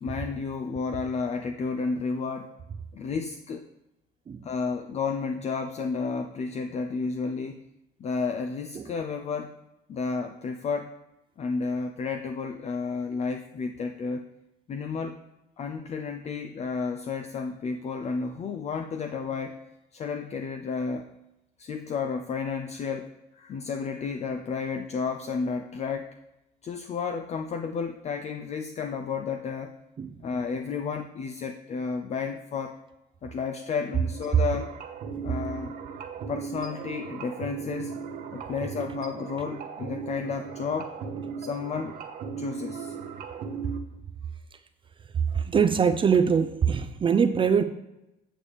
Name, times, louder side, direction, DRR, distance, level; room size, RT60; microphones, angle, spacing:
voice 1, 0.0-2.5 2.9-3.7 4.4-7.6 8.0-9.6 9.9-11.0 11.4-14.2 14.7-15.2 15.6-19.6 19.9-21.1 21.6-26.1 26.6-29.7 30.2-32.8 33.2-34.8 35.2-35.7 36.3-40.9 41.4-42.0 42.4-43.0, left 5 dB, 40° left, 6 dB, 0.5 m, -32 dB
sound 1, 34.1-43.8, right 5 dB, 60° right, 1.0 m, -37 dB
voice 2, 45.3-47.6, right 6 dB, 30° right, 8 dB, 0.4 m, -22 dB
8.6 x 7.0 x 3.3 m, 0.92 s
cardioid pair, 110°, 17 cm